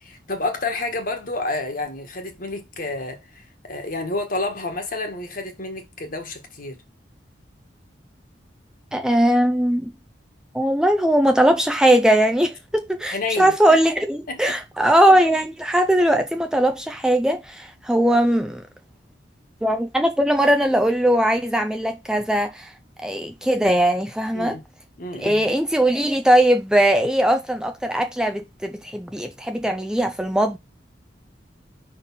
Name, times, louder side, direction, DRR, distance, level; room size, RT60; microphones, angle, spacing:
voice 1, 0.0-6.8 13.1-13.8 14.3-14.6 24.3-24.6 25.0-25.4, left 2 dB, 50° left, 1.6 m, -29 dB
voice 2, 8.9-9.9 10.5-18.6 19.6-22.7 23.0-24.6 25.2-30.6, right 1 dB, 5° right, 0.5 m, -20 dB
5.4 x 4.0 x 5.6 m
head